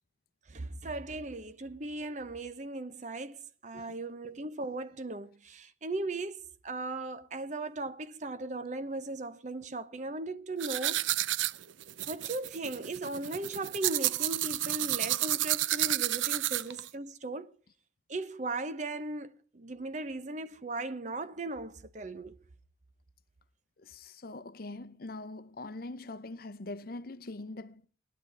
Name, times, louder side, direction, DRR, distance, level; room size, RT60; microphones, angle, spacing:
voice 1, 0.5-3.4 3.6-11.1 12.1-17.5 18.1-22.4, right 2 dB, 40° right, 0.8 m, -37 dB
sound 1, 10.6-16.9, right 14 dB, 85° right, 0.5 m, -31 dB
voice 2, 23.8-27.9, left 2 dB, 50° left, 0.7 m, -43 dB
18.5 x 11.0 x 3.3 m
head